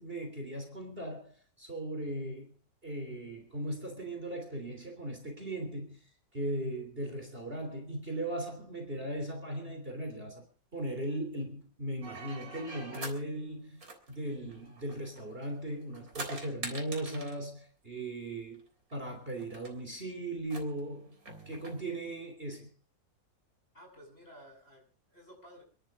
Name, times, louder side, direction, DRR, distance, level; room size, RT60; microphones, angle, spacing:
voice 1, 0.0-2.5 2.8-10.4 10.7-13.8 14.1-18.6 18.9-21.2 21.5-22.7, right 1 dB, 30° right, 3.5 m, -38 dB
sound 1, 12.0-13.2 13.8-15.5 15.8-17.4 18.6-18.7 18.9-19.0 19.4-19.7 20.4-21.8, right 3 dB, 50° right, 4.0 m, -44 dB
voice 2, 23.7-25.6, equal, 30° left, 8.1 m, -54 dB
29.5 x 11.5 x 3.7 m
omnidirectional pair, 1.9 m